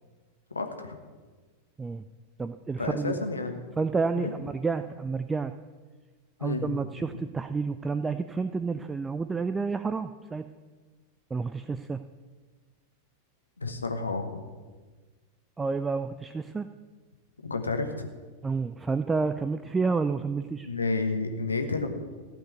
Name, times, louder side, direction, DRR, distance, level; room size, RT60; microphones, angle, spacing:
voice 1, 0.5-0.9 2.8-3.6 4.1-4.3 6.4-6.7 13.6-14.4 17.4-18.1 20.6-21.9, left 3 dB, 80° left, 5 dB, 1.3 m, -30 dB
voice 2, 2.4-3.2 3.8-5.5 6.4-10.5 11.3-12.0 15.6-16.7 18.4-20.7, right 4 dB, 15° right, 10 dB, 0.4 m, -30 dB
15.5 x 5.3 x 9.3 m, 1.4 s
figure-of-eight pair, 90°, 0 cm